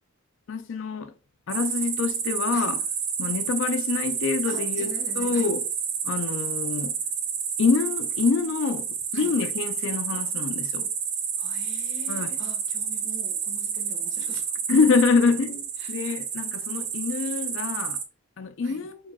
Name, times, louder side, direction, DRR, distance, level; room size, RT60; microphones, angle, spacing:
voice 1, 0.5-1.1 1.5-2.8 3.2-4.9 5.2-5.6 6.0-6.9 7.6-8.9 9.1-10.9 12.1-12.3 14.7-18.0 18.4-19.0, left 5 dB, 65° left, 0.4 m, -25 dB
sound 1, 1.5-18.0, right 7 dB, 75° right, 0.8 m, -30 dB
voice 2, 4.5-5.5 9.1-9.4 11.4-14.6 15.8-16.0 18.6-18.9, right 2 dB, 60° right, 1.3 m, -42 dB
4.7 x 4.7 x 2.2 m
head